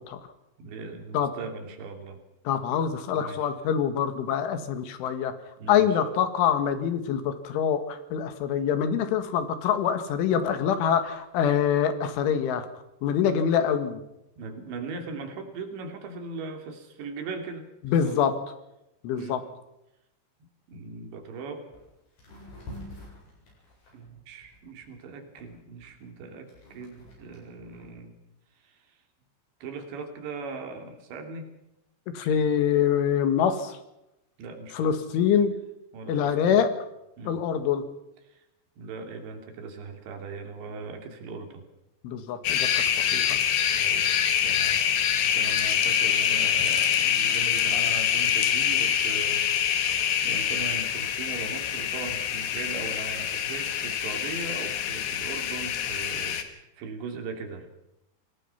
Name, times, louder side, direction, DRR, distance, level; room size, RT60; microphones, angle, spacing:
voice 1, 0.6-2.2 2.7-2.8 3.1-3.5 5.6-6.0 14.4-18.2 19.2-19.4 20.7-21.7 23.9-28.1 28.6-29.0 29.6-31.5 32.2-32.5 34.4-34.9 35.9-36.6 37.2-37.4 38.2-38.4 38.8-41.6 43.7-44.1 44.4-44.8 45.2-57.7, right 4 dB, 70° right, 5 dB, 4.9 m, -39 dB
voice 2, 2.5-5.3 5.7-12.7 13.0-14.0 17.8-18.3 19.0-19.4 32.2-33.8 34.8-35.6 36.1-36.7 37.3-37.8 42.0-42.7 43.1-43.4, left 8 dB, 90° left, 10 dB, 4.3 m, -25 dB
sound 1, 21.2-21.3 21.7-21.9 22.2-24.9 25.4-27.9, left 1 dB, 55° left, 10.0 m, -46 dB
sound 2, 42.4-56.4, left 9 dB, 70° left, 3.7 m, -25 dB
27.0 x 18.5 x 5.8 m, 0.89 s
omnidirectional pair, 5.4 m